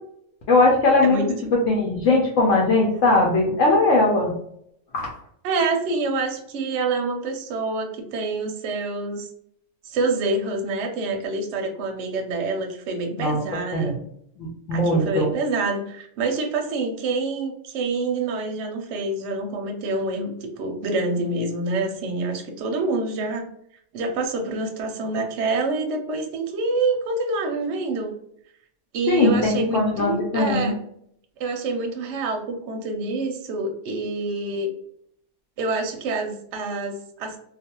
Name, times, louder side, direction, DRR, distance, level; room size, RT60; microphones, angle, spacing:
voice 1, 0.5-1.2 1.5-4.3 4.9-5.1 13.2-13.4 13.7-14.0 14.4-15.3 29.1-30.7, left 2 dB, 70° left, -2 dB, 0.9 m, -20 dB
voice 2, 5.4-9.3 9.8-14.0 14.7-23.5 23.9-28.1 28.9-30.8 31.4-34.7 35.6-37.4, right 3 dB, 65° right, 3 dB, 0.8 m, -27 dB
2.4 x 2.3 x 2.8 m, 0.71 s
omnidirectional pair, 1.5 m